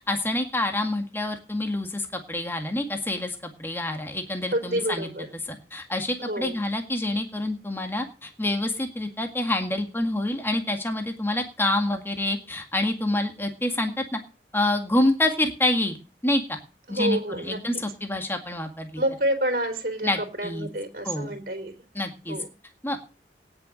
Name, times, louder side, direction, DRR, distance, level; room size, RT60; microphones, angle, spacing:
voice 1, 0.1-5.1 5.5-14.2 14.5-16.0 16.2-16.6 16.9-19.0 20.0-20.7 21.0-21.3 21.9-22.4 22.8-23.0, left 1 dB, 15° left, 5 dB, 1.9 m, -27 dB
voice 2, 4.5-5.3 6.2-6.5 16.9-17.6 19.0-21.8 22.3-22.5, right 1 dB, 50° right, 5 dB, 3.4 m, -28 dB
17.5 x 7.0 x 6.4 m, 0.36 s
head